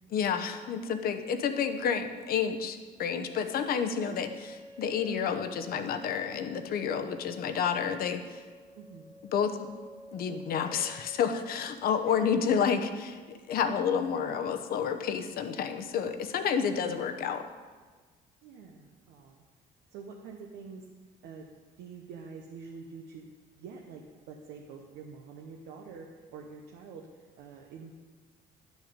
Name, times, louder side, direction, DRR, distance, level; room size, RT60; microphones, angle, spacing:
voice 1, 0.1-8.4 9.3-9.7 10.1-17.4, left 7 dB, 60° left, 7 dB, 0.8 m, -30 dB
sound 1, 3.3-11.3, equal, 20° right, 1.1 m, -51 dB
voice 2, 8.7-9.2 16.9-17.0 18.4-19.4 19.9-20.8 21.2-21.5 21.8-23.3 23.5-27.9, right 5 dB, 85° right, 0 dB, 0.9 m, -46 dB
10.5 x 6.3 x 5.1 m, 1.4 s
cardioid pair, 110°, 17 cm